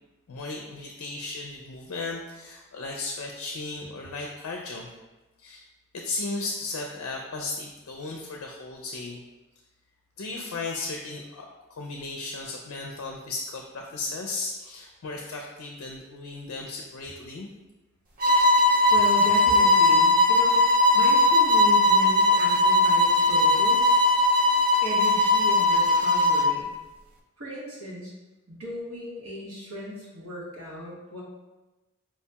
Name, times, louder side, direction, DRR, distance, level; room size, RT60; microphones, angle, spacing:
voice 1, 0.3-4.9 5.4-5.6 5.9-9.2 10.2-17.5, left 3 dB, 75° left, 1 dB, 0.4 m, -35 dB
sound 1, 18.2-26.6, left 2 dB, 40° right, 0.4 m, -19 dB
voice 2, 18.9-24.2 24.8-26.7 27.4-28.1 28.5-31.2, equal, 70° right, -5 dB, 1.1 m, -36 dB
4.5 x 2.8 x 2.2 m, 1.1 s
head